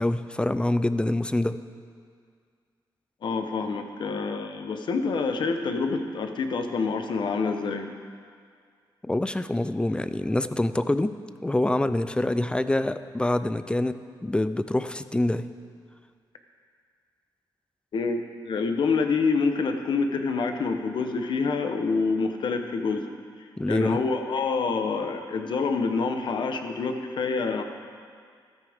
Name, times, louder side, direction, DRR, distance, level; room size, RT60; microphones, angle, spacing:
voice 1, 0.0-1.6 9.0-15.5 23.6-24.0, left 1 dB, 10° left, 12 dB, 0.5 m, -26 dB
voice 2, 3.2-7.9 17.9-23.1 23.7-27.6, left 4 dB, 65° left, 6 dB, 1.0 m, -27 dB
14.0 x 13.0 x 3.6 m, 2.1 s
cardioid pair, 85°, 8 cm